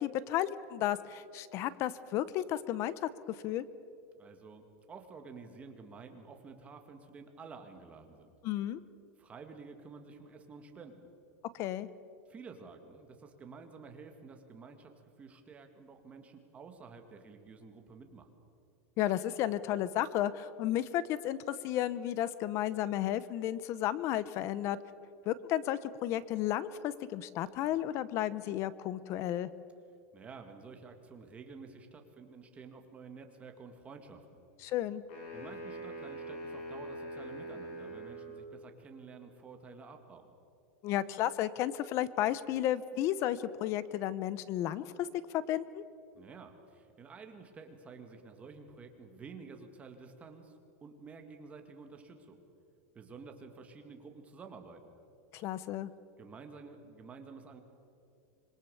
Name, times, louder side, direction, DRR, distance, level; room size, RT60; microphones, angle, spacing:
voice 1, 0.0-3.6 8.4-8.8 11.5-11.9 19.0-24.8 25.3-29.5 34.6-35.0 40.8-45.1 45.3-45.8 55.3-55.9, left 12 dB, 35° left, 17 dB, 0.7 m, -33 dB
voice 2, 4.1-8.3 9.2-11.1 12.3-14.9 15.2-18.3 30.1-34.4 35.3-40.3 46.1-52.4 52.9-54.9 56.2-57.6, right 4 dB, 15° right, 5 dB, 2.0 m, -51 dB
sound 1, 35.1-38.4, right 1 dB, 55° left, 8.0 m, -43 dB
26.0 x 22.0 x 7.0 m, 2.5 s
supercardioid pair, 165°, 8 cm